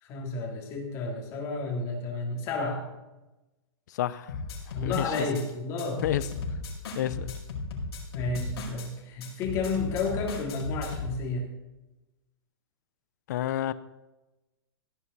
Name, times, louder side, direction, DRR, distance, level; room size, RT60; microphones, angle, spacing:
voice 1, 0.0-2.9 4.7-6.0 8.1-11.5, left 3 dB, 25° left, 2.5 m, -31 dB
voice 2, 3.9-4.4 4.8-5.1 6.0-6.3 7.0-7.4 13.3-13.7, left 12 dB, 45° left, 0.6 m, -29 dB
sound 1, 4.3-5.5 5.8-8.9 9.2-11.1, left 3 dB, 75° left, 5.2 m, -36 dB
16.5 x 9.3 x 4.1 m
supercardioid pair, 175°, 14 cm